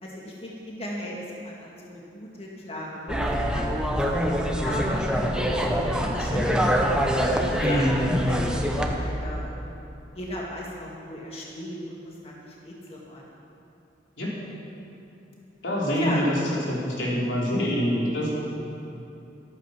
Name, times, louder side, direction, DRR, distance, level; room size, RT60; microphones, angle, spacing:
voice 1, 0.0-3.2 3.5-5.6 5.9-6.8 7.5-7.9 8.2-8.4 8.6-9.8 10.1-13.2 16.0-16.2, left 1 dB, 35° left, -3 dB, 1.9 m, -37 dB
sound 1, 3.1-9.0, equal, 5° right, 1.0 m, -25 dB
voice 2, 7.6-8.1 14.2-14.3 15.6-16.4 16.7-18.3, equal, 90° left, -5 dB, 3.9 m, -25 dB
14.0 x 13.5 x 6.0 m, 2.8 s
head